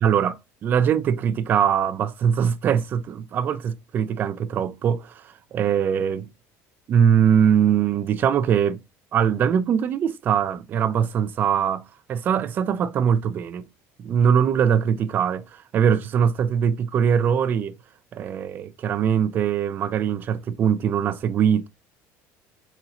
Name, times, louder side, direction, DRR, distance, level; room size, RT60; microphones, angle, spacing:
voice 1, 0.0-5.2 5.5-6.3 6.9-8.8 9.1-11.8 12.1-13.7 14.0-17.7 18.1-21.7, right 8 dB, 30° right, 0.3 m, -22 dB
4.2 x 4.0 x 2.3 m
cardioid pair, 165°, 6 cm